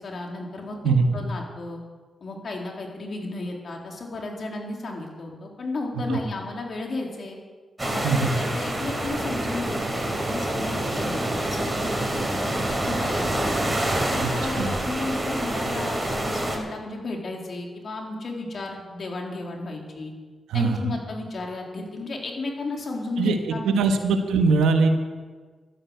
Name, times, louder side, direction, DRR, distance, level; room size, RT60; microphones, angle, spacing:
voice 1, 0.0-1.8 2.2-7.4 7.8-13.6 14.1-20.1 20.5-24.0, left 2 dB, 55° left, 0 dB, 3.8 m, -33 dB
sound 1, 7.8-16.6, right 1 dB, 20° right, 4.6 m, -27 dB
voice 2, 23.6-24.9, right 4 dB, 85° right, 5 dB, 1.5 m, -21 dB
12.5 x 11.0 x 8.1 m, 1.4 s
supercardioid pair, 50°, 0 cm